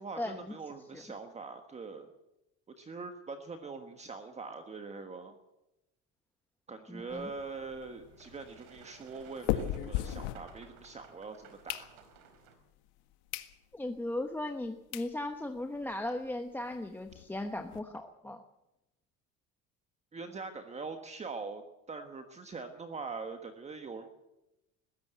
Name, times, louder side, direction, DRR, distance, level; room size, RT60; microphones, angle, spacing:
voice 1, 0.0-2.1 2.8-5.3 6.7-11.9 20.1-21.6 21.9-24.1, right 4 dB, 20° right, 6 dB, 1.4 m, -43 dB
voice 2, 6.9-7.3 13.7-18.4, left 1 dB, 5° left, 5 dB, 1.0 m, -37 dB
sound 1, 7.1-11.0 11.4-12.4 12.9-13.0 13.3-13.5 14.0-14.1 14.6-14.7 14.9-15.1 15.6-15.7 15.8-16.0 16.2-16.3 16.6-17.8, left 13 dB, 85° left, 1.7 m, -38 dB
Boat Water vehicle, 7.5-12.5, right 7 dB, 85° right, 4.7 m, -58 dB
20.5 x 16.0 x 8.1 m, 0.92 s
cardioid pair, 145°, 33 cm